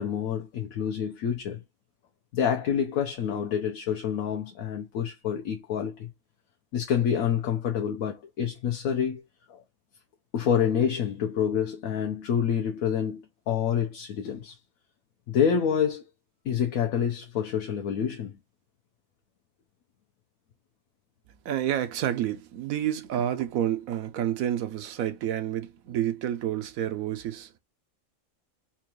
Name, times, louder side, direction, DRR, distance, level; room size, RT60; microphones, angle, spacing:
voice 1, 0.0-1.6 2.3-6.1 6.7-9.2 9.5-9.6 10.3-13.2 13.5-14.5 15.3-16.0 16.4-18.3, left 8 dB, 80° left, 1.1 m, -27 dB
voice 2, 21.4-27.6, right 11 dB, 80° right, 1.1 m, -29 dB
4.4 x 2.4 x 2.9 m
omnidirectional pair, 1.5 m